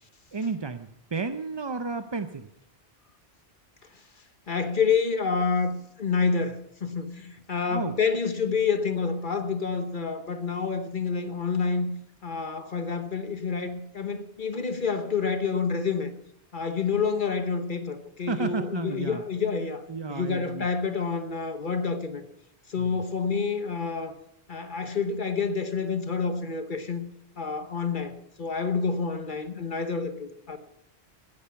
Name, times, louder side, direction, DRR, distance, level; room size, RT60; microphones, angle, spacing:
voice 1, 0.3-2.5 7.7-8.0 18.3-19.2 19.9-20.7 22.8-23.0, right 4 dB, 30° right, 9 dB, 0.5 m, -32 dB
voice 2, 4.5-11.9 12.2-16.1 16.5-19.8 20.1-22.2 22.7-24.2 24.5-27.0 27.4-30.6, left 5 dB, 50° left, 9 dB, 1.1 m, -28 dB
17.0 x 13.0 x 5.8 m, 0.75 s
omnidirectional pair, 1.1 m